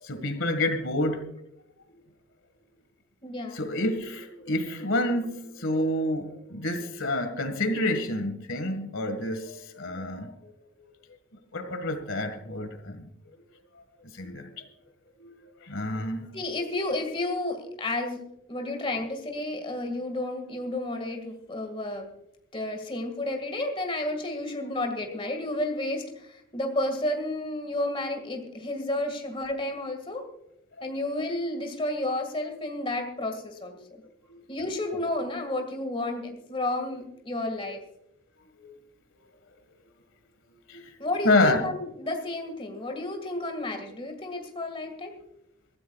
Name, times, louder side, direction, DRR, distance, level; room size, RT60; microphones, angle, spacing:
voice 1, 0.0-1.2 3.5-10.5 10.8-10.9 11.5-13.1 14.1-14.6 15.2-15.4 15.7-16.7 18.6-18.7 21.0-21.1 25.0-25.2 30.8-30.9 34.3-34.5 37.6-37.8 38.6-38.8 40.7-40.9 41.2-41.6, left 1 dB, 75° left, 1.7 m, -29 dB
voice 2, 3.2-3.6 16.3-22.1 22.5-30.3 30.8-34.0 34.5-37.9 41.0-45.1, left 1 dB, 25° left, 1.9 m, -31 dB
24.0 x 13.5 x 2.4 m
head